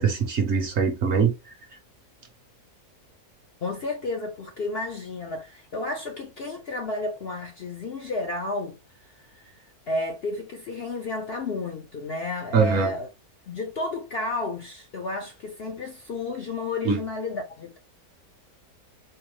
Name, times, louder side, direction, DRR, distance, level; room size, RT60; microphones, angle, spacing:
voice 1, 0.0-1.5 12.5-12.9 16.8-17.0, right 5 dB, 55° right, 0.9 m, -22 dB
voice 2, 3.6-8.8 9.3-9.5 9.9-13.1 13.5-17.8, left 2 dB, 60° left, 0.6 m, -32 dB
4.5 x 2.1 x 3.1 m
omnidirectional pair, 1.6 m